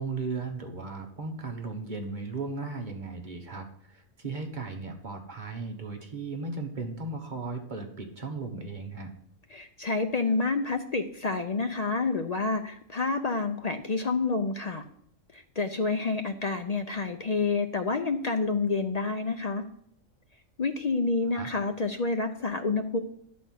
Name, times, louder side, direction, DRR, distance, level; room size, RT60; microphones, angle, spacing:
voice 1, 0.0-9.1 21.3-21.5, right 3 dB, 40° right, 3 dB, 1.2 m, -36 dB
voice 2, 9.5-14.8 15.3-19.6 20.6-23.0, left 3 dB, 60° left, 6 dB, 0.4 m, -28 dB
10.0 x 4.2 x 7.5 m, 0.72 s
omnidirectional pair, 1.4 m